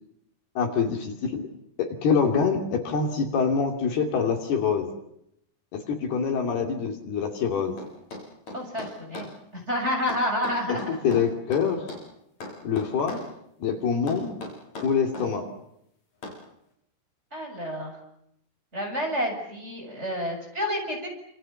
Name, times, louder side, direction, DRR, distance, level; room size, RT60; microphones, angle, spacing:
voice 1, 0.6-1.5 1.8-4.9 5.7-7.8 11.0-11.8 12.6-13.2 13.6-14.3 14.8-15.5, left 6 dB, 65° left, 4 dB, 4.6 m, -25 dB
sound 1, 7.8-9.3 10.1-12.1 12.4-13.3 14.1-15.3 16.2-16.5, left 2 dB, 45° left, 7.2 m, -39 dB
voice 2, 8.5-9.3 9.5-10.9 17.3-17.9 18.7-21.1, equal, 15° right, 2 dB, 7.2 m, -29 dB
28.5 x 28.5 x 7.1 m, 0.77 s
omnidirectional pair, 4.9 m